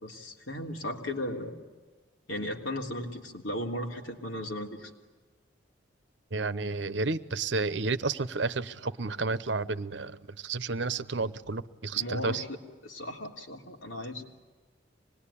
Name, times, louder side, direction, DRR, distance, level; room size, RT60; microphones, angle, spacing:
voice 1, 0.0-1.6 2.3-4.9 11.9-12.6 12.8-14.2, left 1 dB, 90° left, 1 dB, 3.4 m, -36 dB
voice 2, 6.3-12.4, right 3 dB, 70° right, 14 dB, 0.9 m, -31 dB
26.0 x 20.5 x 10.0 m, 1.3 s
head